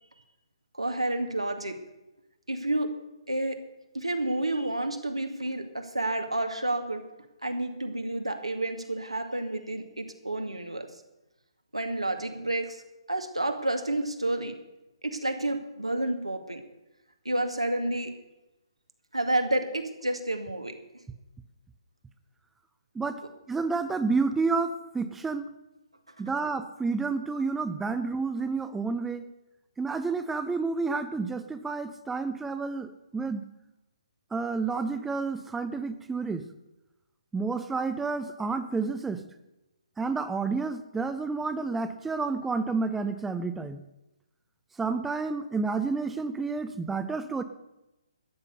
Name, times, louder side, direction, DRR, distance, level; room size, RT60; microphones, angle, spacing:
voice 1, 0.7-1.8 2.5-2.9 3.3-3.6 3.9-7.0 7.4-10.9 11.7-12.8 13.1-14.5 15.0-16.6 17.2-18.1 19.1-20.8, right 1 dB, 85° right, 5 dB, 2.2 m, -30 dB
voice 2, 23.5-25.5 26.2-29.2 29.8-33.4 34.3-36.5 37.3-39.3 40.0-43.8 44.8-47.4, right 4 dB, 5° right, 10 dB, 0.6 m, -30 dB
13.0 x 9.7 x 6.7 m, 0.97 s
figure-of-eight pair, 135°, 3 cm